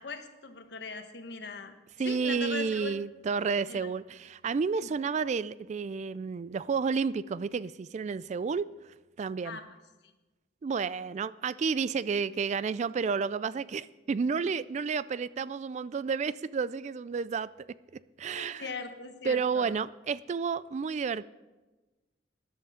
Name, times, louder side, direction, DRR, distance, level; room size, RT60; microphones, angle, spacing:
voice 1, 0.0-1.7 2.0-2.9 3.7-3.9 9.4-9.7 18.4-19.7, left 4 dB, 65° left, 1.3 m, -40 dB
voice 2, 2.0-8.7 9.2-9.6 10.6-17.5 17.9-18.7 19.2-21.2, right 5 dB, 40° right, 0.3 m, -31 dB
14.0 x 11.0 x 5.0 m
head